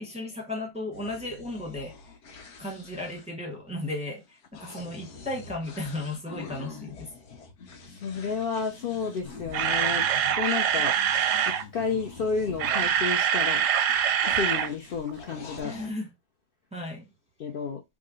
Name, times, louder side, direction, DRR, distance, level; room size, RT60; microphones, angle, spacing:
voice 1, 0.0-1.9 2.6-7.1 15.6-16.1 16.7-17.1, left 2 dB, 5° right, 0.6 m, -35 dB
sound 1, 0.9-13.1 13.9-15.9, left 5 dB, 55° left, 0.9 m, -45 dB
voice 2, 7.9-11.0 11.5-13.7 14.2-15.7 17.4-17.8, left 5 dB, 85° left, 0.5 m, -31 dB
Camera, 9.2-11.6 12.4-14.7 15.0-15.1 15.6-15.7, right 9 dB, 70° right, 0.8 m, -24 dB
3.7 x 2.1 x 3.6 m
omnidirectional pair, 1.7 m